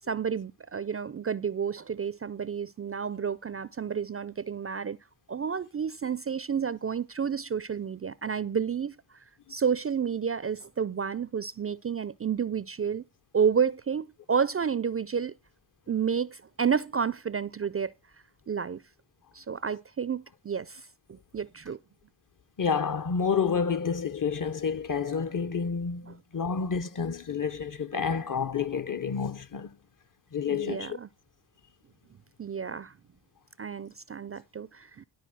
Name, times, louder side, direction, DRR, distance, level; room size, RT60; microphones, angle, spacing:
voice 1, 0.1-5.0 5.3-8.9 9.5-13.0 13.3-15.3 15.9-17.9 18.5-18.8 19.3-21.8 26.1-26.2 30.5-31.1 32.4-32.9 33.6-35.0, right 7 dB, 35° right, 0.4 m, -30 dB
voice 2, 22.6-29.7 30.3-31.0, left 6 dB, 45° left, 0.8 m, -29 dB
12.0 x 4.4 x 6.1 m
cardioid pair, 50°, 44 cm